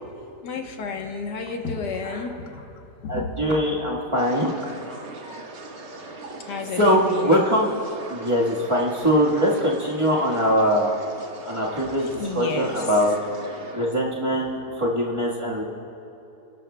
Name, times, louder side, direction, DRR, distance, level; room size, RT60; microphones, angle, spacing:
voice 1, 0.4-3.3 6.5-7.4 12.2-12.8, left 4 dB, 90° left, 3 dB, 1.7 m, -31 dB
voice 2, 3.1-5.4 6.8-7.7 8.1-10.9 11.4-13.2 13.7-15.6, equal, 20° right, -5 dB, 1.4 m, -22 dB
sound 1, 4.2-13.9, right 2 dB, 45° right, 1.2 m, -40 dB
27.0 x 12.0 x 2.2 m, 2.9 s
omnidirectional pair, 1.8 m